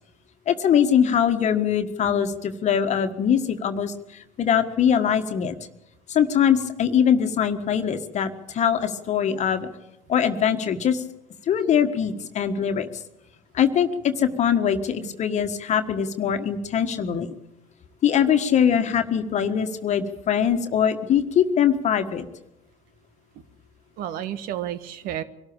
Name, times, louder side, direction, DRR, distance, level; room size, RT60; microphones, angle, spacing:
voice 1, 0.5-5.5 6.1-9.7 10.1-11.0 11.5-12.9 13.5-17.3 18.0-22.3, left 8 dB, 45° left, 8 dB, 1.5 m, -22 dB
voice 2, 24.0-25.2, right 11 dB, 60° right, 13 dB, 1.5 m, -32 dB
23.5 x 13.0 x 8.7 m, 0.90 s
hypercardioid pair, 70°, 17 cm